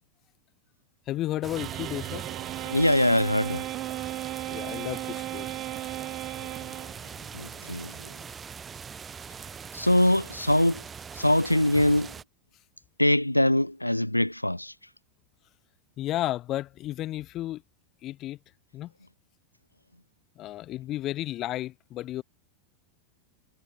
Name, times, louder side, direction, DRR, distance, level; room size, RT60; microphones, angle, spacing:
voice 1, 1.1-2.3 4.5-5.5 16.0-17.6 18.0-18.4 18.7-18.9 20.4-22.2, left 14 dB, 35° left, 5.5 m, -33 dB
sound 1, 1.4-12.2, right 6 dB, 20° right, 3.4 m, -41 dB
sound 2, 1.6-7.4, right 18 dB, 40° right, 3.2 m, -36 dB
voice 2, 2.7-3.6 7.3-8.1 9.7-10.8 11.1-12.1 13.0-14.7, left 1 dB, 85° left, 1.8 m, -23 dB
figure-of-eight pair, 90°, 0 cm